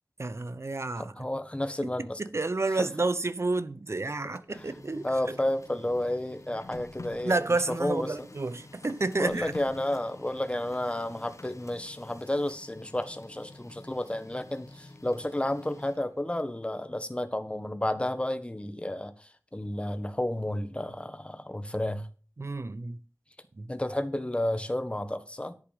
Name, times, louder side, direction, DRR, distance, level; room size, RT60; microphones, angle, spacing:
voice 1, 0.2-1.2 1.8-1.9 2.2-5.1 7.2-9.5 22.4-23.0 23.6-23.7, right 3 dB, 55° right, 0.8 m, -30 dB
voice 2, 1.0-2.2 4.5-4.6 5.0-7.3 7.8-8.1 9.2-22.1 23.7-25.5, left 1 dB, 20° left, 1.4 m, -31 dB
Printer, 4.2-16.2, left 2 dB, 70° left, 1.6 m, -49 dB
11.0 x 8.2 x 5.2 m
wide cardioid pair, 65°, 6 cm